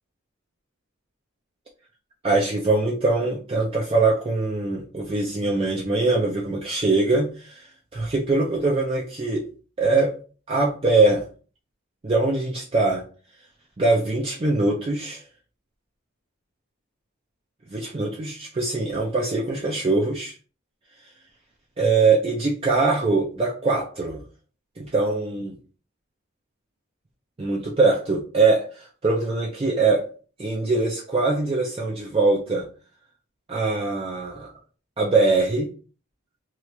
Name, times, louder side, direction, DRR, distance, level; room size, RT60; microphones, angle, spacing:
voice 1, 2.2-9.5 9.8-10.1 10.5-11.2 12.0-13.0 13.8-15.2 17.7-20.3 21.8-24.2 24.8-25.5 27.4-30.1 30.4-32.7 33.5-34.5 35.0-35.7, right 3 dB, 25° right, -2 dB, 0.4 m, -22 dB
3.0 x 2.4 x 3.2 m, 0.38 s
head